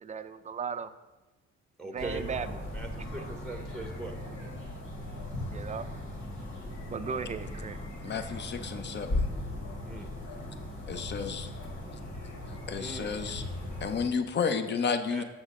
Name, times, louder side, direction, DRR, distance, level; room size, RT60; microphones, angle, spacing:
voice 1, 0.0-0.9 1.8-2.6 3.2-3.3 5.5-5.9 6.9-7.8, right 6 dB, 25° right, 11 dB, 0.4 m, -36 dB
voice 2, 1.8-2.2 2.7-4.1 9.8-10.1 12.7-13.2 15.1-15.2, right 2 dB, ahead, 4 dB, 0.9 m, -40 dB
sound 1, 2.0-14.1, left 1 dB, 75° left, 2.5 m, -38 dB
voice 3, 8.0-9.3 10.9-11.5 12.7-13.4 13.8-15.2, left 6 dB, 35° left, 9 dB, 0.6 m, -31 dB
7.3 x 6.3 x 3.7 m, 1.1 s
cardioid pair, 90°, 30 cm